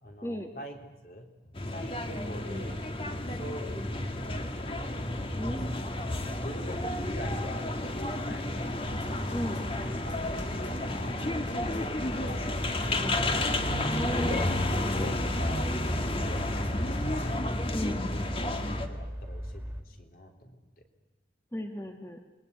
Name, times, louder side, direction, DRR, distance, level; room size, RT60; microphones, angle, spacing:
voice 1, 0.0-2.8 3.1-5.1 5.5-6.1 6.3-8.9 9.4-9.6 9.9-13.6 14.1-14.2 14.6-17.4 17.9-20.6, left 1 dB, 50° left, 4 dB, 3.4 m, -44 dB
sound 1, 1.6-18.9, left 1 dB, 30° left, 1.7 m, -31 dB
voice 2, 2.1-2.7 5.4-5.9 9.3-9.6 13.9-14.5 17.7-18.0 21.5-22.2, equal, 15° left, 4 dB, 1.5 m, -36 dB
sound 2, 3.7-19.8, equal, 10° right, 2.2 m, -40 dB
sound 3, 8.7-17.5, left 1 dB, 85° left, 3.4 m, -48 dB
27.5 x 21.0 x 9.6 m, 1.1 s
head